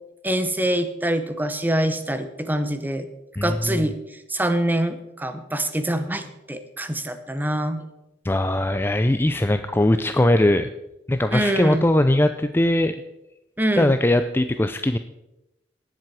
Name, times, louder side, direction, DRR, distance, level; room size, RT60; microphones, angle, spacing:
voice 1, 0.2-3.1 3.4-3.9 4.3-7.8 11.3-11.8 13.6-13.9, right 1 dB, 10° right, 10 dB, 0.9 m, -24 dB
voice 2, 3.4-3.9 8.2-10.7 11.1-13.0 13.8-15.0, left 1 dB, 15° left, 9 dB, 0.4 m, -20 dB
18.0 x 7.6 x 4.8 m, 0.94 s
head